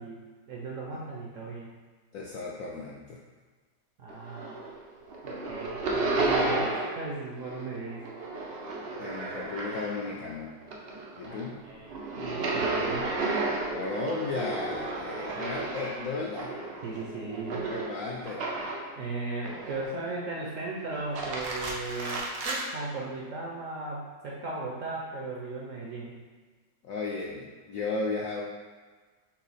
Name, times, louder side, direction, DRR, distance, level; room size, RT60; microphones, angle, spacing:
voice 1, 0.0-1.7 4.0-4.6 5.2-8.0 11.3-13.2 16.8-17.6 19.0-26.2, right 3 dB, 65° right, -3 dB, 0.8 m, -37 dB
voice 2, 2.1-3.2 9.0-10.6 11.2-11.6 13.7-16.6 17.7-18.4 26.8-28.4, left 3 dB, 75° left, -3 dB, 0.8 m, -34 dB
sound 1, 4.1-4.8 5.1-7.1 7.4-10.2 10.6-18.9 19.4-20.1 20.9-22.7, right 2 dB, 85° right, 0.5 m, -33 dB
6.0 x 2.1 x 4.0 m, 1.4 s
omnidirectional pair, 1.9 m